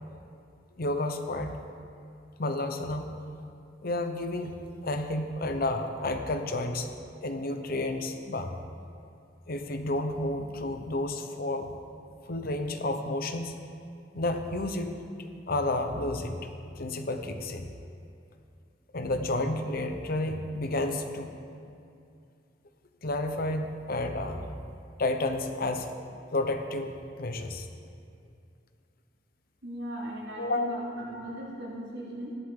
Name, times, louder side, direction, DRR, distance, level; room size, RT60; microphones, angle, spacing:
voice 1, 0.8-1.6 2.4-3.1 3.8-4.6 4.8-6.9 7.2-8.5 9.5-11.7 12.3-13.5 14.1-14.9 15.5-16.5 16.8-17.7 18.9-21.4 23.0-24.5 25.0-25.9 26.3-27.7 30.4-30.8, left 2 dB, 55° left, 6 dB, 0.9 m, -31 dB
voice 2, 29.6-32.4, right 1 dB, 80° right, -4 dB, 3.0 m, -38 dB
15.0 x 11.0 x 3.8 m, 2.5 s
head